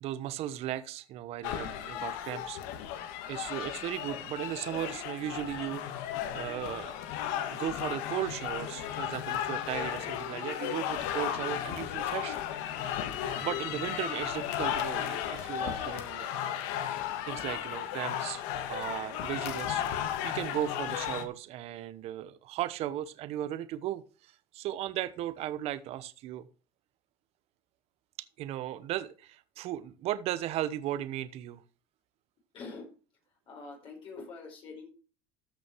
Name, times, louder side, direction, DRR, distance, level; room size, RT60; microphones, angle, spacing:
voice 1, 0.0-2.6 3.3-6.1 6.3-7.0 7.5-12.4 13.4-16.6 17.2-18.4 18.7-26.5 28.4-31.6, right 12 dB, 60° right, 13 dB, 1.0 m, -36 dB
sound 1, 1.4-21.2, left 10 dB, 75° left, 1.7 m, -35 dB
voice 2, 32.5-32.9 33.5-34.9, left 4 dB, 50° left, -1 dB, 5.0 m, -44 dB
14.0 x 6.3 x 4.6 m, 0.36 s
supercardioid pair, 100°, 12 cm